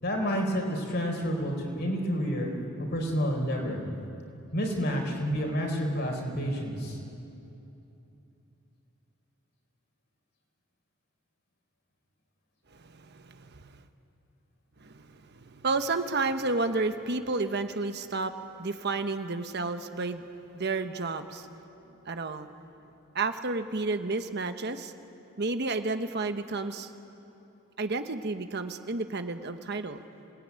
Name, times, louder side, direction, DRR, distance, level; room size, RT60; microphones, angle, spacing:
voice 1, 0.0-2.5 2.8-3.8 4.5-7.0, equal, 50° left, 1 dB, 4.3 m, -29 dB
voice 2, 12.7-13.8 14.8-20.2 20.5-21.5 22.0-22.5 23.1-24.9 25.4-26.9 27.8-30.0, right 3 dB, 55° right, 8 dB, 1.1 m, -31 dB
26.5 x 18.5 x 9.6 m, 2.9 s
head